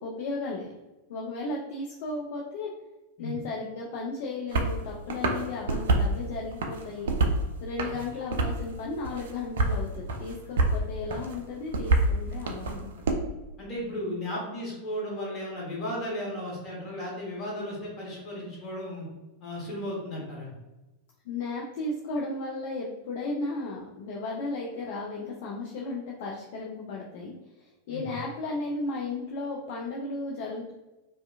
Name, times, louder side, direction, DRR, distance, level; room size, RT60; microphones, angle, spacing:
voice 1, 0.0-0.7 1.1-2.7 3.2-7.1 7.6-12.9 21.3-30.7, left 3 dB, 50° left, -2 dB, 0.4 m, -35 dB
sound 1, 4.5-4.7 5.1-6.1 6.5-7.4 7.8-8.7 9.0-9.8 10.1-10.8 11.1-13.1, right 3 dB, 60° right, 0.3 m, -26 dB
voice 2, 13.6-19.1 19.4-20.5 27.9-28.1, equal, 30° left, -4 dB, 1.2 m, -35 dB
2.6 x 2.1 x 2.3 m, 1.1 s
figure-of-eight pair, 90°, 0 cm